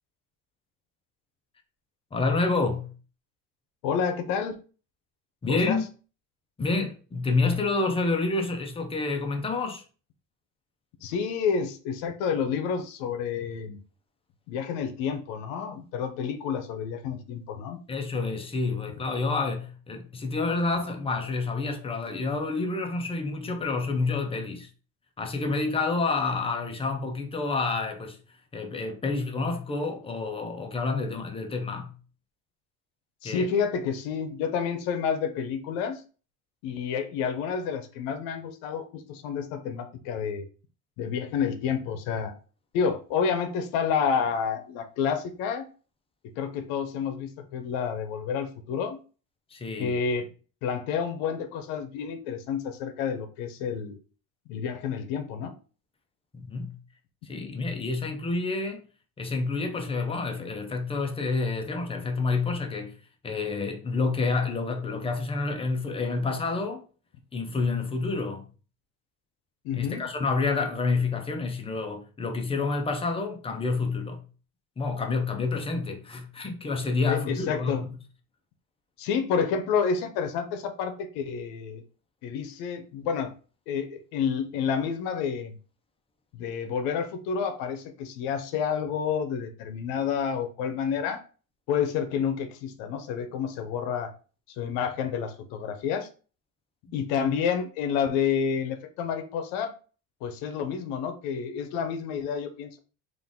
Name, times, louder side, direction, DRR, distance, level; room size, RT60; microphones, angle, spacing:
voice 1, 2.1-2.9 5.4-5.9 6.6-9.8 17.9-24.7 25.2-28.2 28.5-31.9 33.2-33.5 49.5-50.0 56.3-56.8 57.2-58.9 59.2-62.9 63.2-66.8 67.3-68.5 69.7-74.2 74.8-77.9, left 3 dB, 15° left, 0.6 m, -28 dB
voice 2, 3.8-4.6 5.5-5.8 11.0-13.8 14.5-17.8 33.2-36.0 36.6-40.5 41.0-42.3 42.7-45.7 46.4-49.0 49.8-50.3 50.6-54.0 54.5-55.5 69.6-70.0 77.1-77.8 79.0-81.8 82.2-83.3 83.7-85.6 86.3-91.2 91.7-94.1 94.5-96.1 96.9-99.7 100.2-102.8, left 6 dB, 90° left, 0.7 m, -29 dB
3.8 x 2.5 x 3.6 m
cardioid pair, 135°, 34 cm